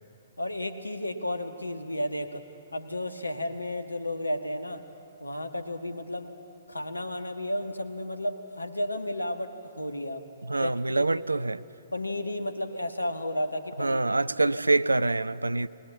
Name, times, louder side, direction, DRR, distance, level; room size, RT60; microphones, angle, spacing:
voice 1, 0.4-2.4 2.7-4.8 5.2-6.3 6.7-10.3 10.6-11.2 11.9-14.0 14.5-14.6, left 1 dB, 90° left, 1.5 m, -33 dB
voice 2, 10.4-11.6 13.8-15.7, right 2 dB, 85° right, 0.5 m, -25 dB
22.0 x 20.0 x 8.3 m
figure-of-eight pair, 125°, 0 cm